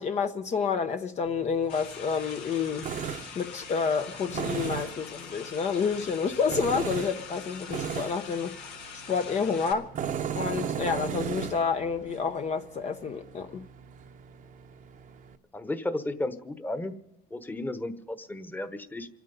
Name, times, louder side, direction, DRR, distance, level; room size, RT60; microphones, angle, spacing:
voice 1, 0.0-2.9 3.4-8.6 9.1-9.9 10.3-13.6, left 6 dB, 45° left, 0.8 m, -29 dB
Tools, 1.3-15.4, right 7 dB, 50° right, 0.9 m, -37 dB
sound 1, 1.7-9.7, left 6 dB, 85° left, 2.4 m, -44 dB
voice 2, 15.5-16.9 17.3-19.1, left 1 dB, 10° left, 1.2 m, -34 dB
28.5 x 9.6 x 5.4 m
cardioid pair, 110°, 17 cm